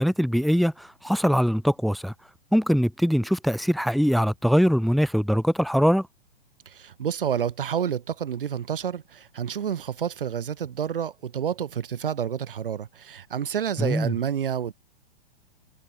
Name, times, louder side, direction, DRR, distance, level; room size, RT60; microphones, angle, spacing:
voice 1, 0.0-2.1 2.5-6.1 13.8-14.1, equal, ahead, 4.5 m, -22 dB
voice 2, 6.7-14.7, right 8 dB, 60° right, 3.6 m, -29 dB
figure-of-eight pair, 110°, 31 cm